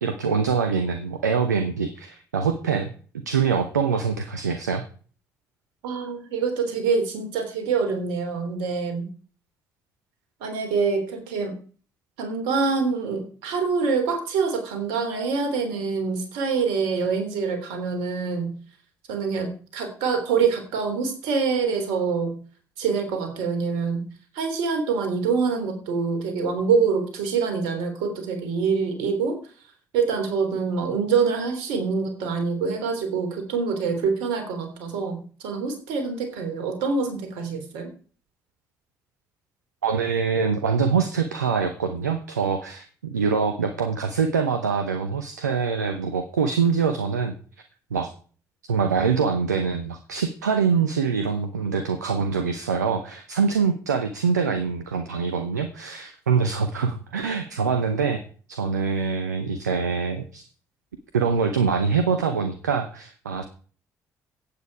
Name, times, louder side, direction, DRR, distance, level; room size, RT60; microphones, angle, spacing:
voice 1, 0.0-2.9 3.3-4.8 39.8-47.3 47.9-48.1 48.7-58.2 58.5-60.4 61.1-63.4, right 5 dB, 85° right, 8 dB, 0.8 m, -24 dB
voice 2, 5.8-9.1 10.4-11.5 12.2-18.6 19.1-22.4 22.8-24.1 24.3-29.4 29.9-37.9, right 5 dB, 70° right, 5 dB, 3.4 m, -25 dB
15.0 x 8.6 x 4.8 m, 0.42 s
figure-of-eight pair, 45°, 9 cm